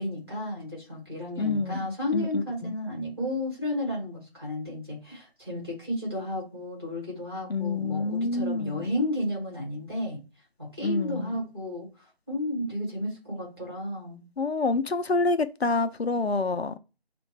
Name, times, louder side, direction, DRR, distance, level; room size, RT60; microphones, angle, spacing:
voice 1, 0.0-10.2 10.6-14.2, left 1 dB, 25° right, 2.0 m, -33 dB
voice 2, 1.4-1.9 2.1-2.8 7.5-8.9 10.8-11.4 14.4-16.8, left 3 dB, 80° left, 0.6 m, -27 dB
6.4 x 2.5 x 3.1 m
figure-of-eight pair, 180°, 31 cm